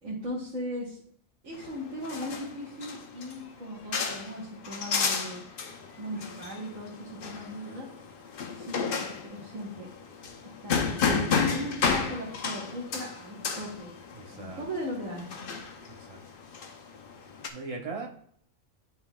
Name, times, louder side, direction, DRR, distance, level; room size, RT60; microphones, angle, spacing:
voice 1, 0.0-1.0 1.4-5.4 6.0-7.9 8.5-9.9 10.6-13.9 14.3-15.2, equal, 75° right, -8 dB, 1.8 m, -38 dB
sound 1, 1.5-17.5, left 5 dB, 50° left, 0.8 m, -33 dB
voice 2, 14.1-14.6 15.9-16.2 17.5-18.1, right 4 dB, 30° right, -1 dB, 1.0 m, -39 dB
9.8 x 4.2 x 2.3 m, 0.64 s
omnidirectional pair, 1.3 m